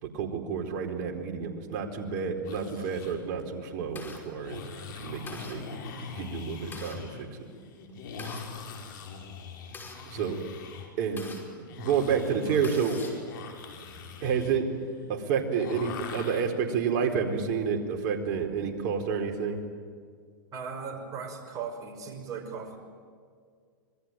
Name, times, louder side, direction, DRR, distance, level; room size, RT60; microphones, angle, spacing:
voice 1, 0.0-5.6 6.1-7.3 10.1-10.4 11.0-11.2 11.8-13.0 14.2-14.7 15.1-19.6, right 6 dB, 50° right, 3 dB, 4.4 m, -29 dB
sound 1, 2.4-3.1 4.3-16.4, left 5 dB, 65° left, 5.4 m, -42 dB
sound 2, 3.2-4.2 4.8-4.9 5.3-5.6 6.3-7.0 7.9-8.5 9.3-11.4 12.0-12.1 12.4-13.3, left 4 dB, 20° left, 5.4 m, -44 dB
voice 2, 20.5-22.8, right 5 dB, 30° right, 4 dB, 5.6 m, -38 dB
26.5 x 22.0 x 9.2 m, 2.1 s
hypercardioid pair, 125°, 11 cm